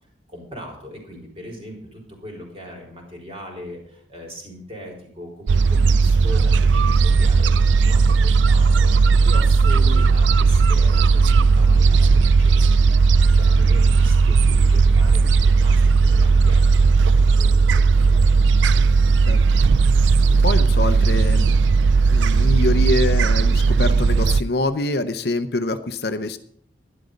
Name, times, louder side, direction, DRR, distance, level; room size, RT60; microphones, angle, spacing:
voice 1, 0.3-16.7 17.0-17.1 17.4-18.2 20.3-20.5, equal, 30° right, 0 dB, 3.9 m, -39 dB
Gull seagull, 5.5-24.4, right 4 dB, 75° right, 0.4 m, -16 dB
voice 2, 20.4-21.6 22.1-26.4, left 2 dB, 55° left, 10 dB, 0.7 m, -25 dB
11.5 x 11.0 x 5.2 m, 0.66 s
head